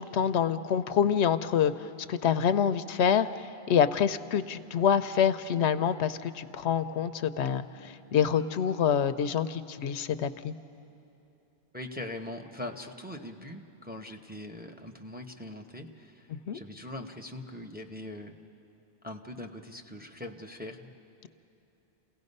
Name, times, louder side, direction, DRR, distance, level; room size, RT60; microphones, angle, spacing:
voice 1, 0.0-1.7 2.1-10.5 16.3-16.6, left 8 dB, 85° left, 12 dB, 0.9 m, -26 dB
voice 2, 11.7-16.3 16.5-18.3 19.0-20.9, left 1 dB, 10° right, 3 dB, 0.8 m, -41 dB
29.0 x 17.0 x 5.4 m, 3.0 s
omnidirectional pair, 1.1 m